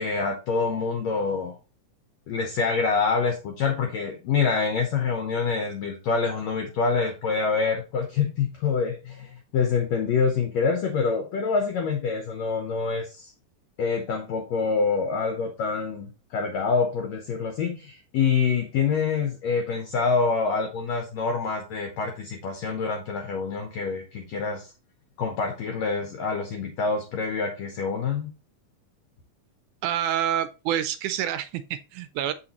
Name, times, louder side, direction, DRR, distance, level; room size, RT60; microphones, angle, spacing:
voice 1, 0.0-1.6 2.3-13.3 13.8-24.7 25.2-28.3, left 5 dB, 65° left, 2.0 m, -26 dB
voice 2, 29.8-32.3, right 10 dB, 80° right, 1.8 m, -27 dB
6.9 x 6.1 x 2.9 m
omnidirectional pair, 3.8 m